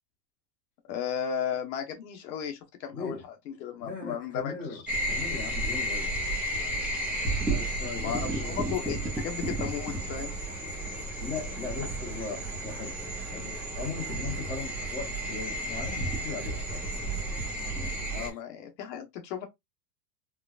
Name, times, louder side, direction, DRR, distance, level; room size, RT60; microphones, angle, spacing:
voice 1, 0.9-3.2 3.5-4.8 8.0-10.4 18.1-19.5, left 8 dB, 80° left, 1.1 m, -35 dB
voice 2, 2.9-3.2 3.8-6.1 7.5-8.6 11.2-13.0 13.3-16.8 18.1-18.4, left 4 dB, 15° left, 1.0 m, -38 dB
sound 1, 4.9-18.3, right 1 dB, 5° right, 0.5 m, -32 dB
4.6 x 2.3 x 2.3 m
supercardioid pair, 170°, 49 cm